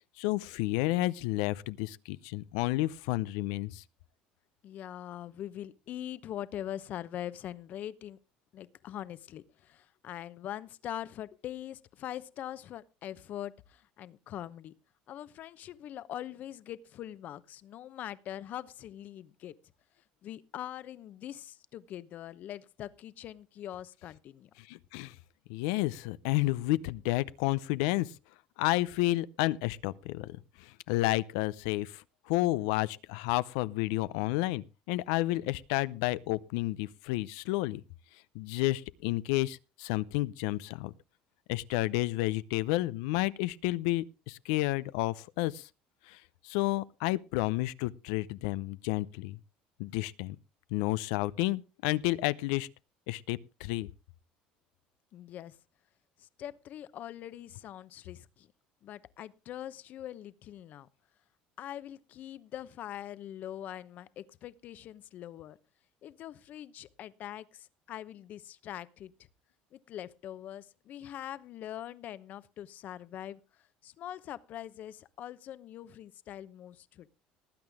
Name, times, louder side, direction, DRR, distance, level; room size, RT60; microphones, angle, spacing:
voice 1, 0.2-3.8 24.6-25.1 25.5-28.1 28.6-37.8 38.3-40.9 41.5-45.7 46.1-49.4 49.8-50.4 50.7-52.7 53.1-53.9, left 18 dB, 85° left, 0.6 m, -31 dB
voice 2, 4.6-8.2 8.5-14.7 15.1-19.5 20.2-24.5 55.1-55.6 56.2-58.5 58.8-60.9 61.6-65.6 66.0-69.1 69.7-73.4 73.8-77.1, left 11 dB, 55° left, 0.9 m, -43 dB
19.0 x 8.8 x 3.6 m
supercardioid pair, 105°, 3 cm